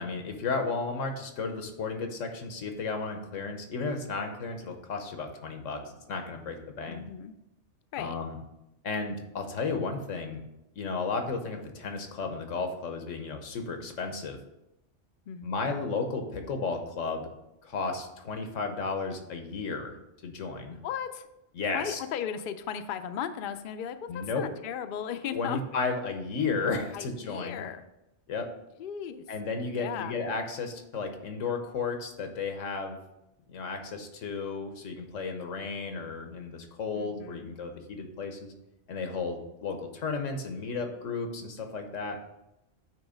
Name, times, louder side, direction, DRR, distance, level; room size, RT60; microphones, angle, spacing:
voice 1, 0.0-7.0 8.0-8.4 8.8-10.4 10.7-14.4 15.4-17.3 17.6-20.0 20.2-20.8 21.6-22.0 24.1-24.5 25.3-27.6 28.3-28.5 29.3-33.0 33.5-38.5 38.9-42.2, left 4 dB, 85° left, 5 dB, 1.3 m, -33 dB
voice 2, 6.9-7.3 7.9-8.2 15.3-15.8 20.8-21.3 21.7-25.6 26.9-27.9 28.8-29.3 29.7-30.1 36.9-37.5, left 8 dB, 60° left, 9 dB, 0.5 m, -36 dB
9.2 x 3.1 x 5.0 m, 0.91 s
omnidirectional pair, 1.3 m